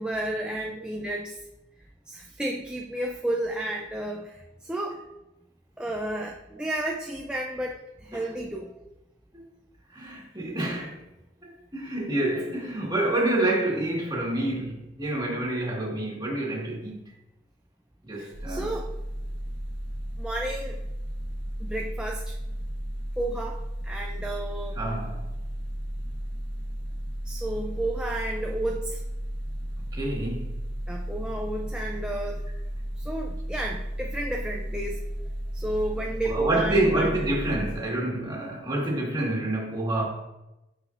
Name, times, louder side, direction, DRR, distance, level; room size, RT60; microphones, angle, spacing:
voice 1, 0.0-1.4 2.1-5.0 5.8-8.7 18.1-18.9 20.2-20.8 21.6-22.4 23.2-24.8 27.2-29.0 30.9-32.4 33.0-35.1 35.5-37.2, right 1 dB, 5° right, 0.4 m, -32 dB
voice 2, 9.9-11.0 11.4-17.1 18.0-18.7 24.8-25.3 29.9-30.6 36.2-40.0, right 1 dB, 20° right, 1.6 m, -28 dB
sound 1, 18.3-37.7, equal, 70° right, 1.3 m, -34 dB
9.5 x 5.0 x 2.5 m
head